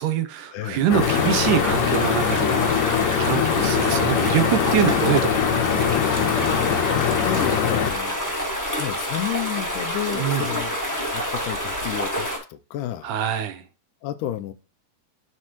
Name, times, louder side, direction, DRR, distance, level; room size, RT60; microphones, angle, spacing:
voice 1, 0.0-6.0 10.1-10.5 13.0-13.6, right 9 dB, 80° right, 2.2 m, -25 dB
voice 2, 0.5-0.9 6.5-6.6 6.9-8.2 8.8-10.8 11.1-13.1 14.0-14.5, left 12 dB, 85° left, 2.2 m, -31 dB
sound 1, 0.9-7.9, left 8 dB, 70° left, 1.9 m, -22 dB
sound 2, 1.0-12.4, equal, 15° left, 0.6 m, -28 dB
Bass guitar, 3.5-7.8, right 6 dB, 50° right, 1.2 m, -41 dB
12.0 x 4.3 x 3.0 m
omnidirectional pair, 3.7 m